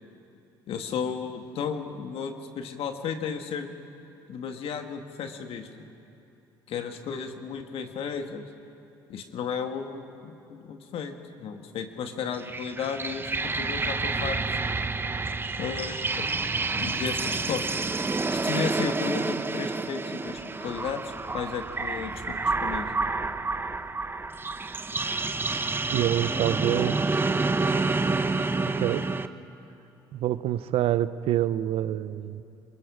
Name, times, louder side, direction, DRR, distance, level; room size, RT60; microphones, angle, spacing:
voice 1, 0.7-3.7 4.3-5.8 6.7-8.5 9.1-14.6 15.6-16.3 16.8-17.6 18.3-22.9, left 6 dB, 65° left, 6 dB, 1.8 m, -34 dB
sound 1, 12.3-29.3, right 3 dB, 20° right, 0.9 m, -29 dB
voice 2, 25.9-27.2 28.8-29.1 30.1-32.4, right 12 dB, 65° right, 15 dB, 0.7 m, -26 dB
26.5 x 21.5 x 5.0 m, 3.0 s
hypercardioid pair, 65°, 11 cm